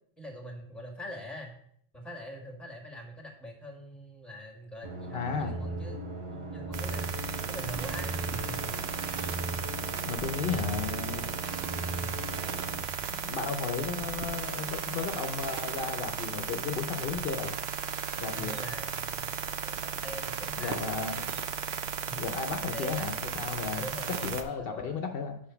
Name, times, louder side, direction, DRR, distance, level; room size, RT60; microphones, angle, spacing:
voice 1, 0.2-1.5 1.9-9.0 18.3-20.8 22.7-23.1 23.7-25.0, equal, ahead, 1 dB, 1.5 m, -44 dB
sound 1, 4.8-12.8, right 2 dB, 30° right, 1.1 m, -37 dB
voice 2, 5.1-5.5 10.1-11.3 13.2-17.6 18.2-18.6 20.6-21.2 22.1-23.8 24.2-25.4, left 6 dB, 65° left, 5 dB, 0.8 m, -34 dB
sound 2, 6.7-24.4, right 7 dB, 75° right, 0.9 m, -35 dB
6.9 x 5.1 x 5.7 m, 0.66 s
omnidirectional pair, 1.1 m